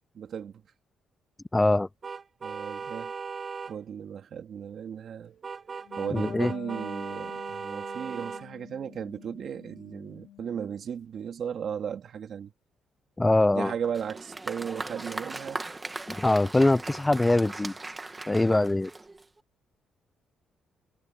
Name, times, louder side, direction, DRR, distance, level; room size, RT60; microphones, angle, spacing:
voice 1, 0.1-0.5 2.4-3.1 3.7-12.5 13.5-15.6, right 8 dB, 60° right, 2.5 m, -36 dB
voice 2, 1.5-1.9 6.1-6.5 13.2-13.7 16.2-17.7 18.3-18.9, left 2 dB, 15° left, 0.5 m, -23 dB
sound 1, 2.0-3.7 5.4-8.4, right 5 dB, 40° right, 0.4 m, -37 dB
Wind instrument woodwind instrument, 5.8-10.9, left 13 dB, 90° left, 3.2 m, -47 dB
Applause, 13.8-19.4, right 2 dB, 20° right, 1.8 m, -39 dB
cardioid pair, 90°, 0 cm